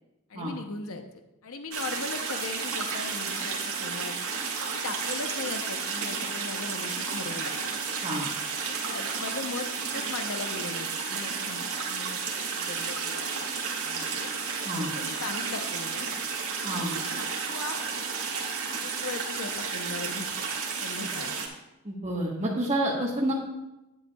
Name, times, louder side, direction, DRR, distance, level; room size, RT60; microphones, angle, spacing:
voice 1, 0.3-4.2 4.7-7.5 8.6-13.5 13.8-14.3 15.0-16.1 16.7-17.7 18.8-20.5 20.8-21.5 23.0-23.3, left 3 dB, 70° left, 6 dB, 0.8 m, -39 dB
sound 1, 1.7-21.5, right 5 dB, 80° right, 1.7 m, -32 dB
voice 2, 21.8-23.3, right 1 dB, 30° right, -6 dB, 1.3 m, -29 dB
10.5 x 9.7 x 2.3 m, 0.94 s
head